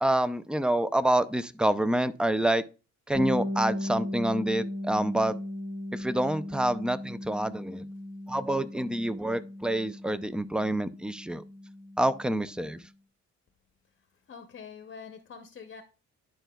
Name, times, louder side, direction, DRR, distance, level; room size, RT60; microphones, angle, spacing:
voice 1, 0.0-2.6 3.1-5.4 5.9-7.9 8.3-11.4 12.0-12.8, right 1 dB, 5° right, 0.4 m, -27 dB
Bass guitar, 3.1-12.8, left 1 dB, 90° right, 3.2 m, -37 dB
voice 2, 14.3-15.8, left 6 dB, 40° left, 0.7 m, -45 dB
11.0 x 4.5 x 2.2 m
cardioid pair, 90°, 30 cm